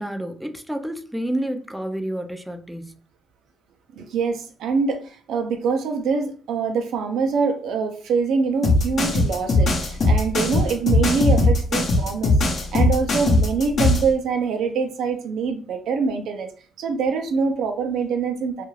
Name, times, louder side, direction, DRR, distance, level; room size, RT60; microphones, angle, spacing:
voice 1, 0.0-2.9, right 1 dB, 5° right, 0.4 m, -29 dB
voice 2, 4.0-12.4 12.7-16.5 16.8-18.7, right 5 dB, 80° right, 0.4 m, -24 dB
sound 1, 8.6-14.1, left 2 dB, 55° left, 0.7 m, -19 dB
2.4 x 2.3 x 3.1 m
cardioid pair, 90°, 0 cm